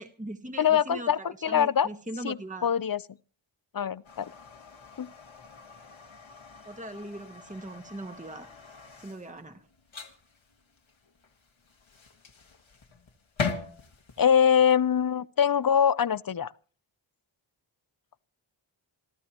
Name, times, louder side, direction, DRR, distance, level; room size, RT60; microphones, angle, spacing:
voice 1, 0.0-2.7 6.6-8.5 9.0-9.7, right 1 dB, 15° right, 1.5 m, -40 dB
voice 2, 0.6-1.9 2.2-3.0 3.7-4.3 5.0-5.1 14.2-16.5, left 8 dB, 45° left, 0.6 m, -23 dB
sound 1, 4.0-14.4, left 5 dB, 70° left, 1.9 m, -41 dB
29.0 x 13.5 x 3.0 m
cardioid pair, 45°, 49 cm